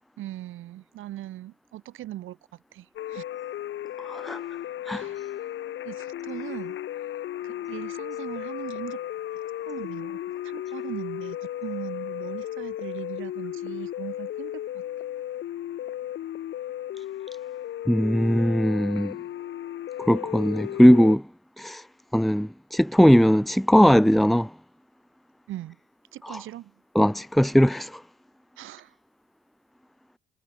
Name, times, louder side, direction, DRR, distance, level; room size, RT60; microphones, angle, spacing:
voice 1, 0.2-2.4 2.7-3.2 4.9-5.3 5.8-6.8 7.4-9.0 9.7-14.8 25.5-25.8 26.1-26.7 28.6-28.9, right 14 dB, 85° right, 5.4 m, -39 dB
sound 1, 3.0-21.2, left 12 dB, 75° left, 2.0 m, -35 dB
voice 2, 4.0-4.4 4.9-5.1 17.9-19.2 20.0-21.2 21.6-21.8 22.1-24.5 26.2-26.4 26.9-28.0, equal, ahead, 0.6 m, -19 dB
cardioid pair, 90°, 20 cm